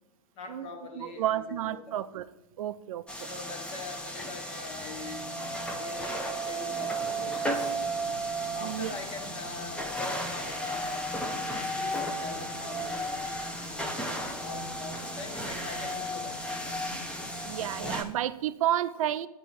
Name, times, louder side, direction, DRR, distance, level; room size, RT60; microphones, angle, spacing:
voice 1, 0.3-2.0 3.1-5.2 5.7-7.8 8.0-8.2 8.5-13.3 14.2-16.3 16.6-16.8, left 4 dB, 50° left, 3 dB, 1.6 m, -43 dB
voice 2, 1.0-2.2 2.6-3.3 8.6-8.9 17.4-19.3, right 12 dB, 60° right, 14 dB, 0.4 m, -31 dB
steam-train-leaving-moor-st-station, 3.1-18.0, right 1 dB, 5° left, 0.7 m, -34 dB
9.1 x 3.0 x 6.1 m, 1.0 s
hypercardioid pair, 105°, 20 cm